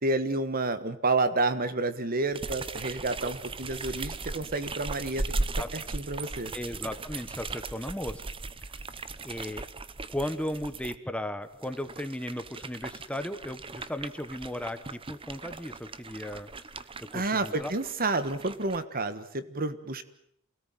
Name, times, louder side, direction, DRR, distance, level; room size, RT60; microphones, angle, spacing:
voice 1, 0.0-5.3 5.7-6.5 17.1-20.0, right 2 dB, 45° right, 12 dB, 1.6 m, -29 dB
sound 1, 2.3-11.0 11.5-18.8, right 3 dB, 25° right, 1.0 m, -38 dB
voice 2, 6.5-8.2 9.2-9.6 10.1-16.5 17.1-17.7, left 1 dB, 5° left, 10 dB, 1.2 m, -36 dB
28.0 x 18.0 x 9.3 m, 0.74 s
head